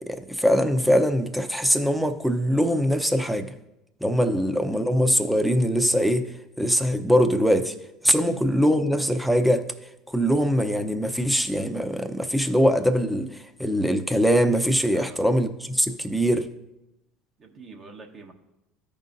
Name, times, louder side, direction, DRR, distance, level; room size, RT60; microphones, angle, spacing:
voice 1, 0.0-3.5 4.0-7.7 8.0-9.7 10.1-16.5, equal, ahead, 0.8 m, -22 dB
voice 2, 14.9-15.3 17.4-18.3, right 4 dB, 40° right, 1.2 m, -46 dB
13.5 x 5.3 x 2.7 m
hypercardioid pair, 75°, 0 cm